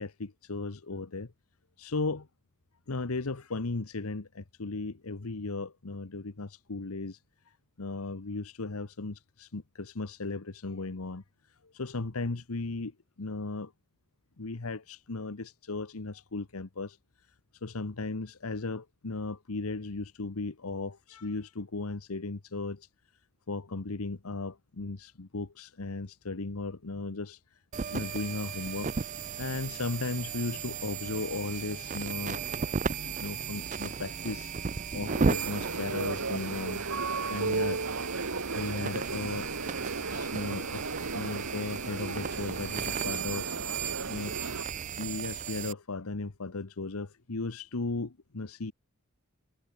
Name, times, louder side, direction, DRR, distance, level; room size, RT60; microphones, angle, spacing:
voice 1, 0.0-1.3 1.8-2.3 2.9-7.2 7.8-11.2 11.7-12.9 13.2-13.7 14.4-17.0 17.6-22.9 23.5-27.6 27.9-28.9 29.4-32.4 33.0-34.5 34.9-36.8 37.3-37.8 38.4-39.5 40.1-40.9 41.1-43.5 44.1-44.4 45.0-48.7, left 3 dB, 85° left, 1.1 m, -36 dB
sound 1, 27.7-45.7, right 5 dB, 35° right, 0.4 m, -35 dB
sound 2, 35.1-44.6, right 3 dB, 75° right, 1.6 m, -35 dB
head